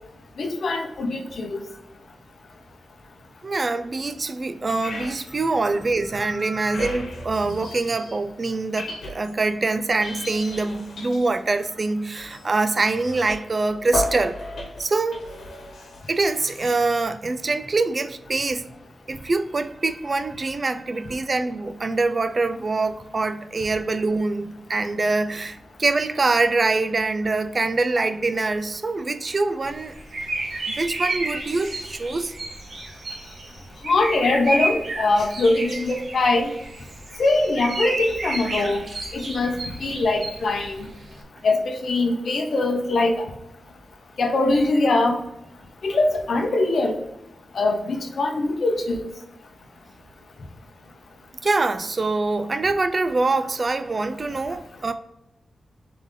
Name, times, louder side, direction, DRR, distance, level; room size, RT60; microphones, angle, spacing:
voice 1, 0.4-1.6 33.8-36.5 37.2-38.8 39.1-40.9 41.4-43.2 44.2-45.2 45.8-47.0 47.5-49.1, left 2 dB, 55° left, 0.7 m, -22 dB
voice 2, 3.4-14.4 14.8-15.3 16.1-18.7 19.1-30.0 30.7-32.3 38.6-38.7 51.4-54.9, right 3 dB, 30° right, 0.3 m, -24 dB
sound 1, 4.8-5.4 5.7-8.2 8.5-9.5 9.9-17.0, left 1 dB, 75° left, 1.2 m, -35 dB
sound 2, 29.6-41.2, right 2 dB, 50° right, 0.9 m, -31 dB
3.8 x 3.7 x 3.6 m
wide cardioid pair, 170°, 0 cm